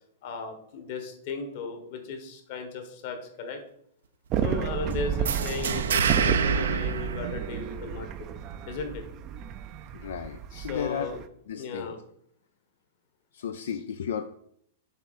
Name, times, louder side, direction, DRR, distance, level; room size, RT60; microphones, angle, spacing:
voice 1, 0.2-3.6 4.4-8.3 8.7-9.0 10.5-11.2 11.6-12.0, left 5 dB, 50° left, 5 dB, 1.3 m, -36 dB
sound 1, 4.3-11.3, right 9 dB, 30° right, 0.4 m, -32 dB
sound 2, 5.2-8.0, right 6 dB, 85° right, 0.6 m, -27 dB
voice 2, 9.9-11.1 11.5-11.9 13.3-14.2, left 8 dB, 80° left, 9 dB, 0.4 m, -34 dB
7.0 x 3.7 x 4.2 m, 0.68 s
hypercardioid pair, 150°, 0 cm